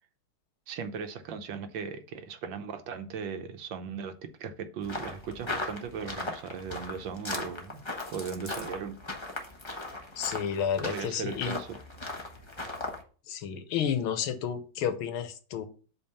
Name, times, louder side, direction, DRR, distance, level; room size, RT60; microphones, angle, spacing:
voice 1, 0.7-7.8 8.1-8.9 10.8-11.7, right 6 dB, 70° right, 1.4 m, -38 dB
sound 1, 4.8-13.0, left 2 dB, 25° left, 0.7 m, -38 dB
voice 2, 10.2-11.6 13.3-15.7, left 8 dB, 90° left, 1.7 m, -31 dB
8.1 x 3.6 x 5.5 m
omnidirectional pair, 2.3 m